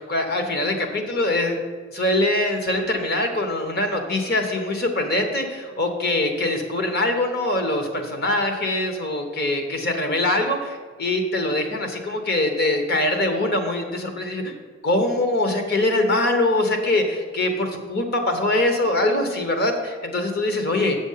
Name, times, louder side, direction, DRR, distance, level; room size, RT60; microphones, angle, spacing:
voice 1, 0.0-1.6 1.9-14.5 14.8-21.0, left 2 dB, 50° left, 4 dB, 1.2 m, -23 dB
7.5 x 7.1 x 5.7 m, 1.5 s
head